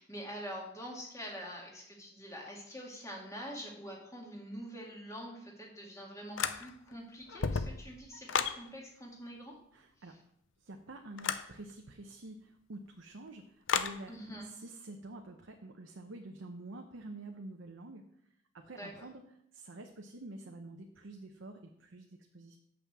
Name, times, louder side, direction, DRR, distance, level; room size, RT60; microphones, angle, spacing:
voice 1, 0.0-9.6 14.1-14.4 18.8-18.9, equal, 15° left, -2 dB, 2.1 m, -45 dB
sound 1, 6.4-6.9 7.3-8.6 11.2-11.5 13.7-14.0, left 6 dB, 85° left, 0.6 m, -33 dB
voice 2, 9.7-10.2 10.6-14.2 14.4-18.0 18.5-19.2 19.5-22.6, right 2 dB, 85° right, 3 dB, 0.8 m, -48 dB
6.4 x 5.8 x 7.2 m, 0.73 s
head